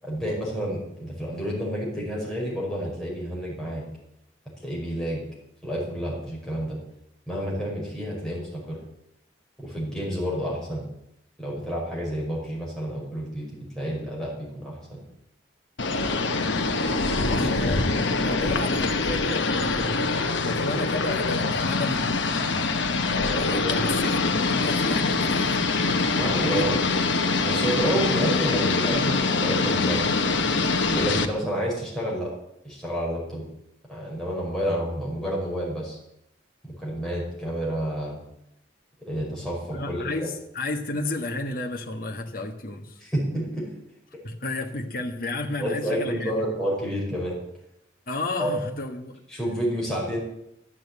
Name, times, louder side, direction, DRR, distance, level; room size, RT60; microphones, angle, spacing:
voice 1, 0.0-3.8 4.6-5.2 5.6-6.8 7.3-8.8 9.6-10.8 11.4-15.0 17.1-17.5 23.4-23.8 26.1-26.8 27.4-30.1 30.9-32.3 32.6-33.4 33.9-36.0 36.6-38.2 39.1-40.3 43.0-43.7 45.6-47.4 48.4-48.5 49.3-50.2, equal, 5° left, -5 dB, 5.2 m, -29 dB
sound 1, 15.8-31.3, left 3 dB, 80° left, 1.1 m, -24 dB
voice 2, 17.2-20.0 20.4-22.1 23.3-25.6 26.2-26.7 39.7-43.0 44.2-46.3 48.1-49.2, left 2 dB, 50° left, 2 dB, 1.5 m, -32 dB
12.5 x 7.6 x 8.6 m, 0.81 s
head